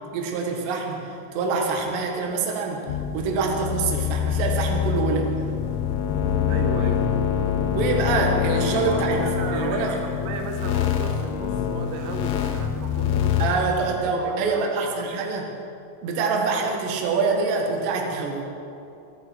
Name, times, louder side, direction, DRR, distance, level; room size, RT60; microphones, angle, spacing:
voice 1, 0.1-2.9 3.1-5.3 7.7-10.0 13.4-15.5 16.0-18.5, right 4 dB, 65° right, 1 dB, 3.5 m, -25 dB
sound 1, 2.9-14.0, left 8 dB, 90° left, 3.4 m, -25 dB
voice 2, 6.5-7.0 8.9-13.7 14.0-14.7 18.1-18.2, right 5 dB, 85° right, 3 dB, 3.7 m, -35 dB
23.5 x 11.5 x 4.7 m, 2.7 s
omnidirectional pair, 5.9 m